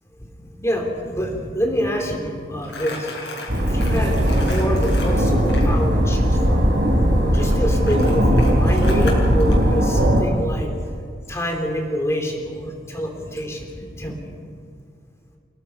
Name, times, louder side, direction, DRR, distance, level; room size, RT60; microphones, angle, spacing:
voice 1, 0.4-3.1 3.6-6.6 7.2-10.7 11.3-14.4, equal, 15° left, 1 dB, 3.3 m, -27 dB
Crumpling crinkling, 2.6-5.7 7.3-9.6, left 3 dB, 70° left, 6.2 m, -36 dB
sound 1, 3.5-10.2, equal, 85° right, 4.5 m, -18 dB
29.5 x 18.5 x 6.0 m, 2.3 s
head